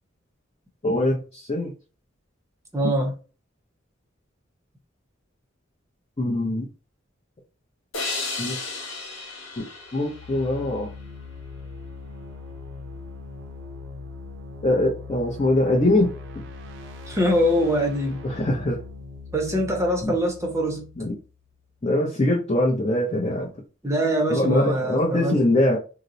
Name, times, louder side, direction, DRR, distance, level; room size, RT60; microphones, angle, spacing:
voice 1, 0.8-1.7 6.2-6.7 8.4-8.6 9.6-9.7 9.9-10.9 14.6-16.1 18.2-18.8 20.0-20.1 21.0-21.1 21.8-23.5 24.3-25.8, left 1 dB, 30° left, 0.6 m, -22 dB
voice 2, 2.7-3.1 17.1-18.2 19.3-20.9 23.8-25.5, equal, 15° right, 0.6 m, -23 dB
sound 1, 7.9-11.2, left 3 dB, 80° left, 1.1 m, -34 dB
sound 2, 9.9-21.6, left 3 dB, 60° right, 0.5 m, -40 dB
2.8 x 2.0 x 3.8 m
head